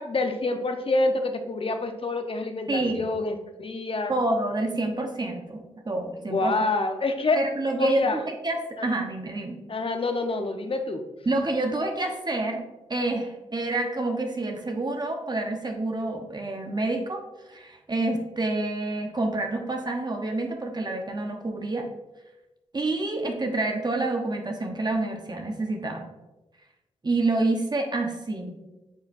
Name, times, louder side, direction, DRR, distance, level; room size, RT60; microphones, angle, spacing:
voice 1, 0.0-4.1 6.3-7.4 7.8-8.2 8.8-8.9 9.7-11.0, left 3 dB, 50° left, 6 dB, 0.9 m, -27 dB
voice 2, 2.7-3.1 4.1-6.5 7.3-9.6 11.3-12.6 12.9-17.2 17.5-21.9 22.7-26.0 27.0-28.6, right 2 dB, 35° right, 3 dB, 1.0 m, -28 dB
8.8 x 4.2 x 2.6 m, 1.0 s
supercardioid pair, 45°, 12 cm